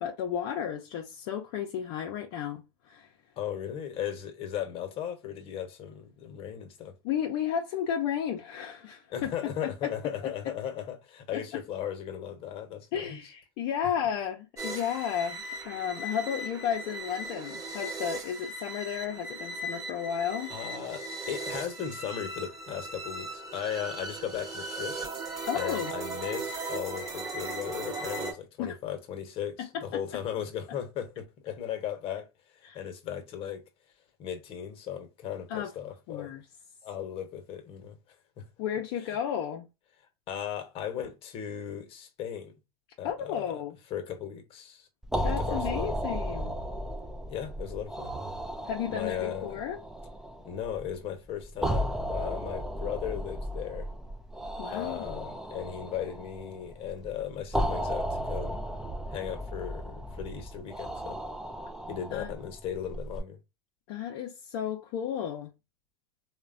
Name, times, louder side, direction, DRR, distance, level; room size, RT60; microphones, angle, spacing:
voice 1, 0.0-3.1 7.0-9.9 11.3-11.6 12.9-20.5 25.5-25.9 28.6-28.8 29.6-30.2 32.6-32.8 35.5-35.7 36.1-36.4 38.6-39.7 43.0-43.8 45.2-46.6 48.7-49.8 54.6-55.2 62.1-62.3 63.9-65.5, left 9 dB, 65° left, 0.4 m, -33 dB
voice 2, 3.4-7.0 9.1-13.2 20.5-25.0 25.5-32.3 32.6-33.6 34.2-36.3 36.8-38.0 38.4-38.5 39.1-39.2 40.3-42.5 43.0-43.5 43.9-44.9 45.2-46.0 47.3-48.1 48.9-49.6 50.4-53.9 54.7-58.6 59.1-61.2 61.9-63.4, left 9 dB, 45° left, 0.8 m, -37 dB
sound 1, 14.6-28.3, right 2 dB, 25° right, 0.9 m, -38 dB
sound 2, 45.0-63.2, equal, 5° right, 0.3 m, -35 dB
3.0 x 2.1 x 2.4 m
supercardioid pair, 115°, 13 cm